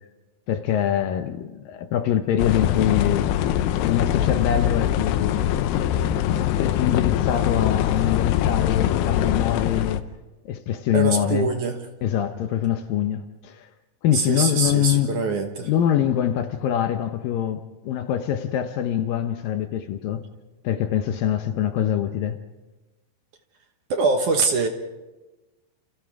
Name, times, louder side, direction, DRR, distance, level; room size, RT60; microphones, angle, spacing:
voice 1, 0.5-3.3 3.8-5.5 6.5-10.0 10.5-11.5 12.0-13.7 14.0-15.2 15.6-20.3 20.6-22.4, left 10 dB, 75° left, 2.3 m, -24 dB
sound 1, 2.4-10.0, left 11 dB, 90° left, 2.9 m, -23 dB
voice 2, 10.9-11.8 14.1-15.7 23.9-24.7, right 4 dB, 65° right, 2.3 m, -23 dB
29.0 x 29.0 x 3.5 m
omnidirectional pair, 4.6 m